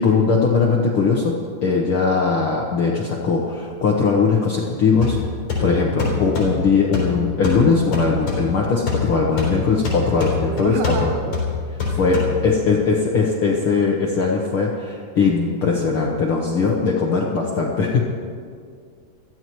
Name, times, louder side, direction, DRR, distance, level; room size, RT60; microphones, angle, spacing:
voice 1, 0.0-5.2 5.6-10.8 11.0-11.1 12.0-18.0, left 4 dB, 90° left, -2 dB, 1.1 m, -20 dB
sound 1, 5.0-12.7, left 4 dB, 50° left, 5.0 m, -26 dB
voice 2, 10.4-11.5, right 8 dB, 85° right, 7 dB, 1.9 m, -29 dB
23.0 x 14.5 x 3.1 m, 2.1 s
omnidirectional pair, 4.2 m